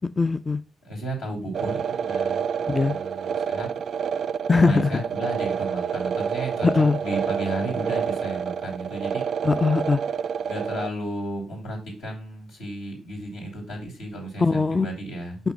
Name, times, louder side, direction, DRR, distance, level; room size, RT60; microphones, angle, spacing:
voice 1, 0.2-0.6 2.7-2.9 4.5-4.9 6.6-7.0 9.4-10.0 14.4-14.9, left 4 dB, 30° left, 13 dB, 0.4 m, -20 dB
voice 2, 0.8-3.7 4.5-9.2 10.5-15.4, right 1 dB, 70° left, -2 dB, 3.1 m, -33 dB
sound 1, 1.5-10.9, right 7 dB, 55° right, 0.3 m, -28 dB
5.8 x 5.5 x 5.4 m, 0.34 s
figure-of-eight pair, 40°, 0 cm